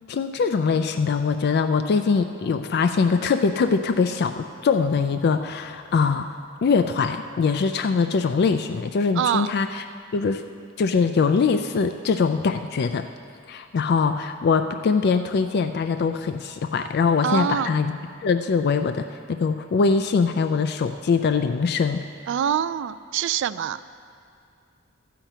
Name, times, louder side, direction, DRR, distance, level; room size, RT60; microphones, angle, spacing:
voice 1, 0.1-9.8 10.1-10.4 10.8-13.1 13.5-22.0, left 5 dB, 55° left, 8 dB, 0.3 m, -22 dB
voice 2, 9.2-9.5 17.2-17.7 22.3-23.8, right 9 dB, 65° right, 14 dB, 0.3 m, -25 dB
12.5 x 5.8 x 8.0 m, 2.4 s
head